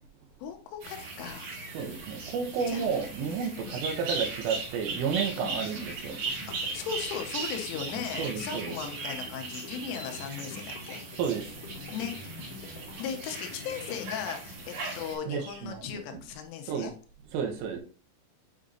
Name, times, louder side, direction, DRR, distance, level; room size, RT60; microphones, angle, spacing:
voice 1, 0.4-1.5 2.7-2.9 3.2-3.8 5.4-5.7 6.5-11.0 11.9-12.2 13.0-16.9, left 8 dB, 85° left, 3.1 m, -37 dB
sound 1, 0.8-15.2, right 3 dB, 50° right, 2.9 m, -38 dB
voice 2, 1.8-6.2 8.2-8.8 11.2-11.6 15.3-16.0 16.7-16.9 17.3-17.8, right 6 dB, 85° right, 3.5 m, -31 dB
sound 2, 6.1-14.6, left 5 dB, 65° left, 2.1 m, -48 dB
8.3 x 5.1 x 2.6 m
omnidirectional pair, 5.8 m